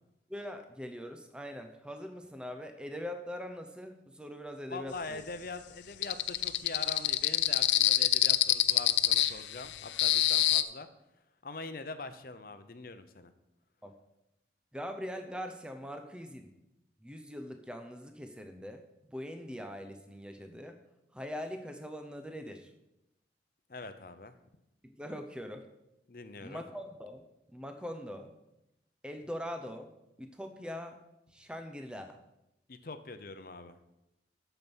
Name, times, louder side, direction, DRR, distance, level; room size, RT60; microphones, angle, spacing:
voice 1, 0.3-5.2 13.8-13.9 14.7-16.5 17.0-18.8 19.1-20.8 21.1-22.7 24.8-25.7 26.4-28.3 29.0-31.0 31.3-32.2, equal, 5° right, 6 dB, 0.7 m, -42 dB
voice 2, 4.7-10.9 11.4-13.3 23.7-24.3 26.1-26.6 32.7-33.8, left 3 dB, 50° left, 10 dB, 0.8 m, -43 dB
sound 1, 6.0-10.6, left 15 dB, 90° left, 0.5 m, -25 dB
9.0 x 7.0 x 6.1 m, 0.89 s
head